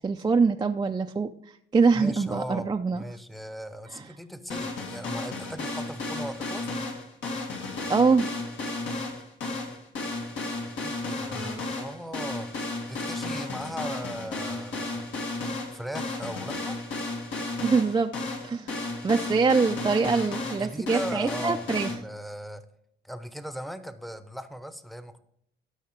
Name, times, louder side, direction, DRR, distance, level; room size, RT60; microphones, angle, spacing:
voice 1, 0.0-3.0 3.9-4.0 7.9-8.3 17.3-18.1 18.4-18.8 19.0-21.9, right 4 dB, 20° right, 5 dB, 0.4 m, -24 dB
voice 2, 1.9-6.7 10.6-15.1 15.7-16.8 20.5-22.7 23.0-25.2, right 1 dB, ahead, 11 dB, 0.8 m, -38 dB
sound 1, 4.5-21.9, left 2 dB, 75° left, 2.2 m, -33 dB
12.5 x 5.6 x 4.5 m, 0.74 s
cardioid pair, 90°, 20 cm